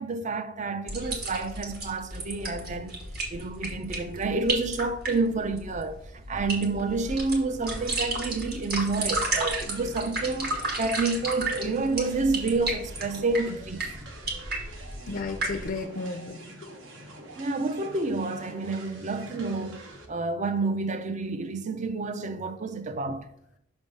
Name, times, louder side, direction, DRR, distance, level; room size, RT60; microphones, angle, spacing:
voice 1, 0.0-3.0 3.3-13.9 17.4-23.3, right 3 dB, 40° right, 0.5 m, -29 dB
sound 1, 0.9-15.7, right 2 dB, 55° right, 1.6 m, -33 dB
sound 2, 9.4-20.1, right 1 dB, 70° right, 1.1 m, -46 dB
voice 2, 15.1-16.9, left 3 dB, 45° left, 0.4 m, -35 dB
6.1 x 3.5 x 5.4 m
head